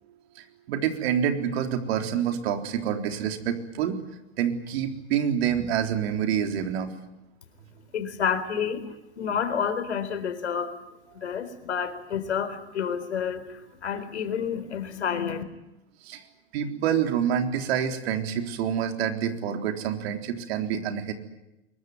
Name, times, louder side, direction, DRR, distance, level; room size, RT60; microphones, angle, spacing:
voice 1, 0.4-4.0 4.4-6.9 16.0-16.2 16.5-21.1, right 8 dB, 70° right, 6 dB, 3.9 m, -27 dB
voice 2, 7.9-8.8 9.2-10.7 11.2-15.4, left 7 dB, 85° left, 10 dB, 4.0 m, -29 dB
23.5 x 22.0 x 9.3 m, 0.94 s
hypercardioid pair, 95°, 33 cm